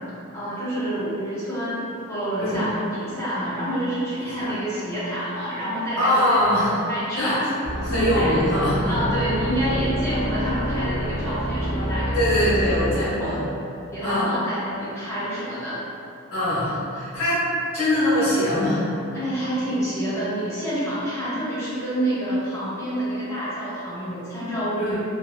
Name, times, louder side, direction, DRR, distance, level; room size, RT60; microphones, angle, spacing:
voice 1, 0.3-6.4 6.9-7.4 7.9-8.3 8.9-12.4 12.7-13.4 13.9-15.8 19.1-25.0, equal, 15° left, -12 dB, 0.8 m, -28 dB
voice 2, 6.0-6.8 7.1-7.5 7.8-9.0 12.1-13.5 14.0-14.3 16.3-17.4 17.7-18.8 24.8-25.0, left 1 dB, 85° left, -12 dB, 1.4 m, -22 dB
sound 1, 7.6-13.1, equal, 45° left, 0.9 m, -27 dB
3.1 x 2.1 x 2.4 m, 2.6 s
head